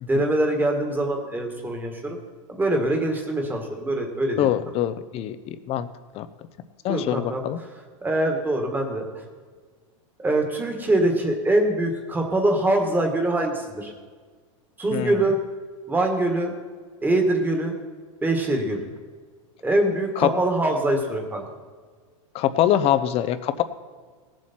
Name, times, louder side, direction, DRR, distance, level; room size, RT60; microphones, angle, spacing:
voice 1, 0.1-2.2 2.5-4.5 6.9-7.4 8.0-9.1 10.2-13.9 14.8-15.4 15.9-16.6 17.0-17.8 18.2-18.9 19.6-21.4, right 1 dB, 10° right, 3 dB, 1.8 m, -23 dB
voice 2, 4.4-5.9 6.1-6.3 6.8-7.6 14.9-15.2 20.2-20.3 22.3-23.6, left 11 dB, 35° left, 12 dB, 0.8 m, -23 dB
17.5 x 7.6 x 4.4 m, 1.5 s
supercardioid pair, 130°, 17 cm